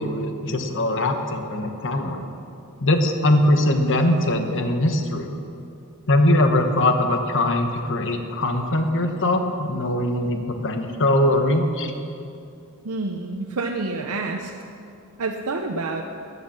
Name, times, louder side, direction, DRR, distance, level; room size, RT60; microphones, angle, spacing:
voice 1, 0.0-2.3 2.8-5.3 6.1-11.9, left 1 dB, 60° left, 6 dB, 1.2 m, -21 dB
voice 2, 12.8-14.5 15.2-16.0, right 3 dB, 85° right, 2 dB, 0.8 m, -28 dB
15.0 x 10.0 x 6.3 m, 2.6 s
head